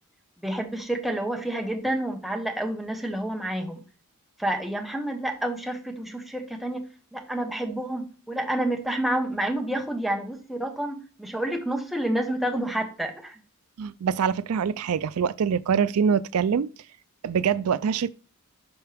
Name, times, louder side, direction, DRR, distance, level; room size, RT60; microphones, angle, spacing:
voice 1, 0.4-3.8 4.4-13.4, right 1 dB, ahead, 1.1 m, -29 dB
voice 2, 13.8-16.7 17.2-18.1, right 7 dB, 80° right, 0.4 m, -24 dB
11.5 x 4.4 x 3.5 m
head